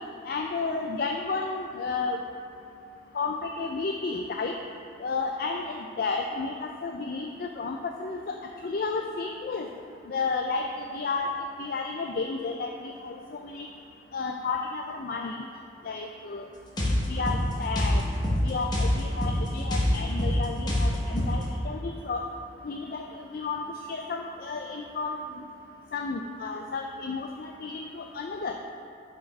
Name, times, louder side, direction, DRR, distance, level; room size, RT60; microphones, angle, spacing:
voice 1, 0.3-2.2 3.1-4.5 5.0-8.3 8.6-9.7 10.1-10.7 10.9-11.3 11.6-13.7 14.1-15.5 15.8-16.5 16.8-18.0 18.4-22.2 22.6-25.2 25.9-28.6, left 4 dB, 50° left, 3 dB, 0.3 m, -32 dB
sound 1, 16.8-21.5, left 1 dB, 20° left, 1.1 m, -26 dB
6.1 x 5.2 x 5.3 m, 2.7 s
head